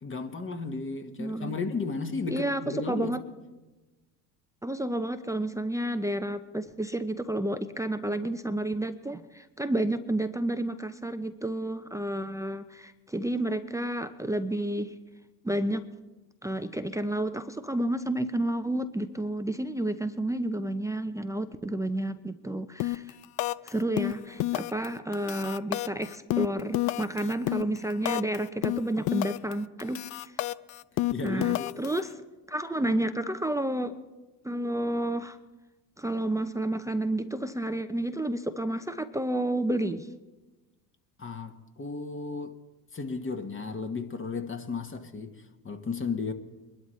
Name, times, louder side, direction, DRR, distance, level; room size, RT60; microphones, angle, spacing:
voice 1, 0.0-3.2 31.1-31.8 41.2-42.5 42.9-46.3, left 4 dB, 25° left, 1.3 m, -34 dB
voice 2, 1.2-1.6 2.3-2.6 2.9-3.2 4.6-14.9 15.4-15.9 16.4-23.1 23.6-30.3 31.2-32.2 32.5-34.0 34.4-35.4 36.0-40.1, right 1 dB, 5° right, 0.6 m, -30 dB
sound 1, 22.8-23.1 23.4-23.7 24.0-24.9 25.1-28.4 28.6-29.5 29.8-32.0, left 17 dB, 40° left, 0.4 m, -29 dB
23.0 x 12.0 x 3.2 m
hypercardioid pair, 80°, 49 cm